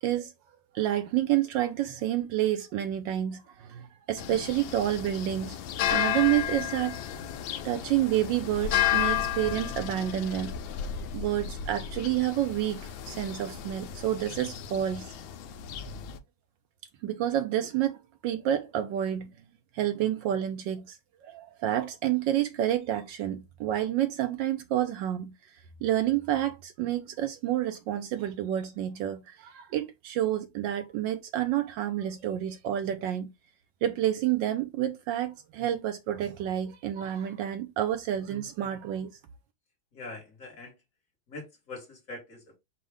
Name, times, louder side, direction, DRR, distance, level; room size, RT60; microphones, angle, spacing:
voice 1, 0.0-0.3 0.7-5.6 5.9-7.0 7.6-10.5 11.1-15.1 17.0-19.3 19.7-21.0 21.2-25.3 25.8-33.3 33.8-39.1, right 12 dB, 75° right, 1.2 m, -29 dB
sound 1, 4.2-16.2, left 11 dB, 80° left, 1.3 m, -33 dB
voice 2, 39.9-40.7 41.3-42.6, left 2 dB, 45° left, 1.7 m, -43 dB
5.3 x 2.3 x 3.4 m
omnidirectional pair, 2.2 m